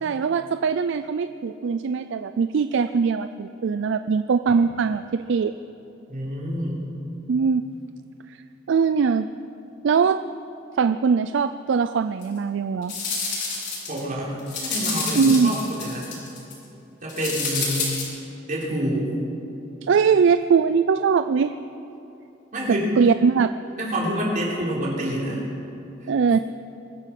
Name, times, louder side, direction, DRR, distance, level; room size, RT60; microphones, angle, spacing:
voice 1, 0.0-5.5 7.3-7.6 8.3-8.4 8.7-9.3 9.8-10.2 10.8-12.9 15.2-15.5 19.8-21.5 22.7-23.5 26.1-26.4, right 5 dB, 65° right, 11 dB, 0.4 m, -21 dB
voice 2, 6.1-6.9 13.9-16.1 17.0-18.0 18.5-19.1 22.5-22.9 23.8-25.4, equal, 45° right, -4 dB, 4.0 m, -27 dB
sound 1, 12.2-12.3 12.8-14.0 14.4-16.5 17.1-18.0, left 4 dB, 60° left, 4.7 m, -28 dB
23.0 x 9.8 x 6.0 m, 2.9 s
head